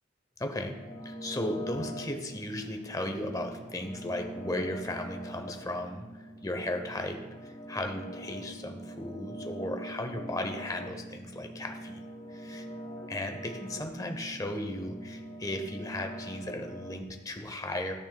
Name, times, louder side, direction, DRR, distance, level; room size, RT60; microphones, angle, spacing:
voice 1, 0.4-0.8 1.0-12.0 12.3-12.7 13.1-17.9, left 1 dB, 20° left, 5 dB, 0.6 m, -36 dB
sound 1, 0.7-16.9, right 1 dB, 40° left, 2.5 m, -43 dB
13.0 x 6.1 x 2.2 m, 1.1 s
head